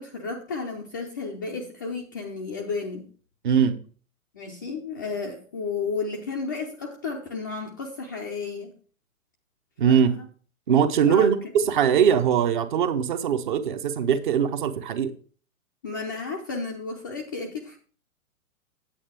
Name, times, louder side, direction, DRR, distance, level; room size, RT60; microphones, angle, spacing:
voice 1, 0.0-3.1 4.3-8.7 9.9-10.2 11.1-11.3 15.8-17.8, left 4 dB, 15° left, 0.4 m, -33 dB
voice 2, 3.4-3.7 9.8-10.1 10.7-15.1, right 8 dB, 35° right, 0.8 m, -21 dB
8.6 x 8.6 x 3.4 m
figure-of-eight pair, 115°, 42 cm